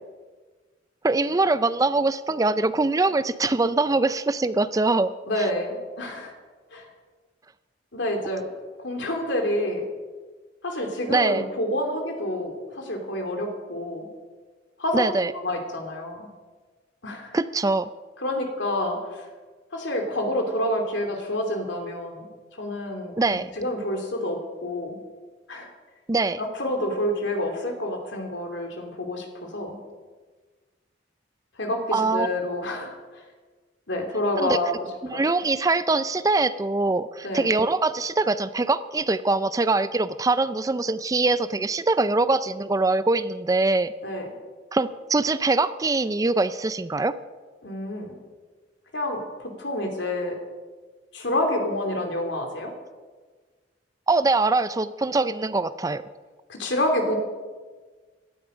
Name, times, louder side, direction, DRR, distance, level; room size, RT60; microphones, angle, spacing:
voice 1, 1.0-5.1 5.4-5.5 11.1-11.4 14.9-15.3 17.3-17.9 23.2-23.5 26.1-26.4 31.9-32.3 34.4-34.6 35.1-43.9 44.7-47.1 54.1-56.0, right 3 dB, 20° right, 14 dB, 0.4 m, -23 dB
voice 2, 5.3-6.3 6.7-6.9 7.9-8.5 8.8-9.8 10.6-14.1 14.8-15.1 15.4-16.3 17.0-17.4 18.2-19.3 19.7-22.3 22.6-25.0 25.5-25.7 26.4-29.8 31.6-33.2 33.9-34.8 35.1-35.2 37.2-37.5 44.0-44.3 47.6-48.2 48.9-50.4 51.1-52.7 56.5-57.2, left 1 dB, 70° left, 3 dB, 2.9 m, -28 dB
17.0 x 12.5 x 5.2 m, 1.4 s
head